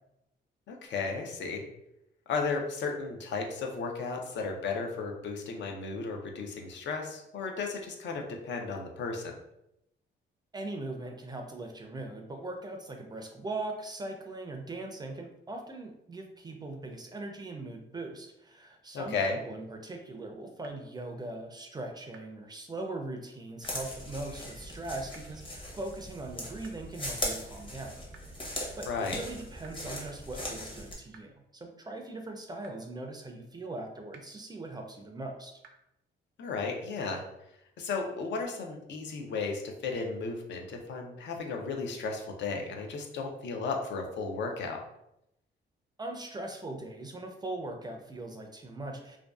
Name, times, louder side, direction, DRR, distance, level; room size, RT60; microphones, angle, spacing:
voice 1, 0.7-1.6 2.3-9.4 18.9-19.4 28.9-29.2 36.4-37.2 37.8-44.8, left 4 dB, 65° left, 2 dB, 0.5 m, -34 dB
voice 2, 10.5-27.9 28.4-35.6 46.0-49.2, right 2 dB, 20° right, 3 dB, 0.4 m, -40 dB
sound 1, 20.6-20.7 22.1-22.2 23.6-23.7 25.1-25.2 26.6-26.7 28.1-28.2 29.6-29.7 31.1-31.2 32.6-32.7 34.1-34.2 35.6-35.7 37.1-37.2, right 6 dB, 80° right, 0.4 m, -52 dB
sound 2, 23.6-30.9, left 1 dB, 25° left, 0.8 m, -39 dB
2.5 x 2.2 x 2.3 m, 0.82 s
cardioid pair, 90°, 20 cm